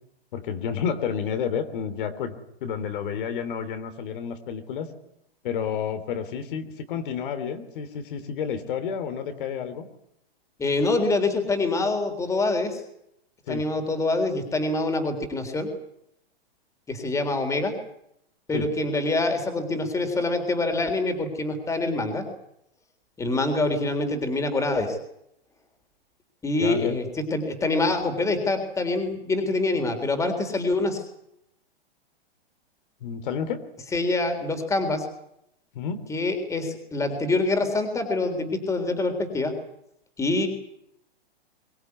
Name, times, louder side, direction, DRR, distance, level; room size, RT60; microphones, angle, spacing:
voice 1, 0.3-4.9 5.4-9.9 13.5-13.6 18.5-18.7 26.6-27.0 33.0-33.6 35.7-36.0, left 7 dB, 55° left, 8 dB, 3.4 m, -30 dB
voice 2, 10.6-12.8 13.5-15.7 16.9-17.7 18.5-22.2 23.2-25.0 26.4-27.0 27.3-31.0 33.9-35.0 36.1-39.5 40.2-40.5, left 2 dB, 10° left, 7 dB, 3.7 m, -25 dB
23.5 x 18.0 x 9.6 m, 0.76 s
hypercardioid pair, 145°, 30 cm